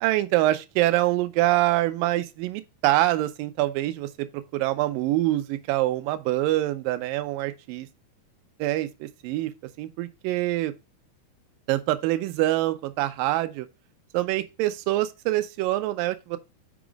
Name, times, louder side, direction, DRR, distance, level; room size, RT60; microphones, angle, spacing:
voice 1, 0.0-4.1 4.5-7.9 8.6-9.5 9.8-10.7 11.7-13.7 14.1-16.4, right 16 dB, 80° right, 2.1 m, -25 dB
6.1 x 4.7 x 5.0 m
omnidirectional pair, 4.5 m